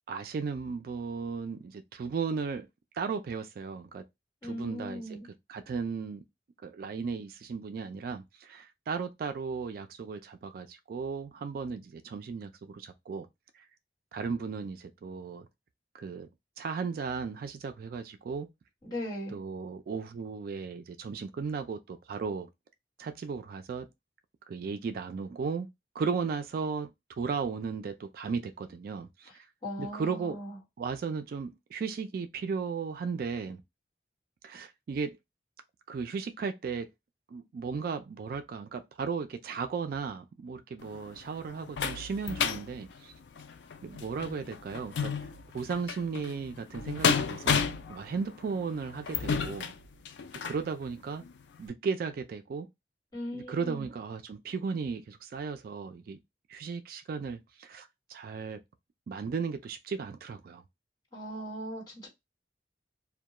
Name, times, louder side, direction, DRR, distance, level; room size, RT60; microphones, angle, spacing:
voice 1, 0.1-2.7 2.9-4.0 4.4-5.2 5.5-6.2 6.6-13.3 13.5-13.6 14.1-15.5 15.9-16.3 16.6-18.5 19.3-22.5 23.0-23.9 24.5-25.7 25.9-26.9 27.2-29.5 29.8-30.4 30.8-33.6 34.4-35.2 35.9-36.9 37.3-43.1 43.8-45.1 45.5-49.7 50.4-51.2 51.6-52.7 53.3-56.2 56.5-58.6 59.1-60.6, right 5 dB, 55° right, 0.3 m, -35 dB
voice 2, 4.4-5.3 18.8-19.4 29.6-30.6 53.1-53.9 61.1-62.1, equal, 25° left, 1.4 m, -38 dB
sound 1, 40.8-50.6 51.2-51.3 51.7-51.8, left 6 dB, 80° left, 0.4 m, -33 dB
2.2 x 2.1 x 2.8 m
head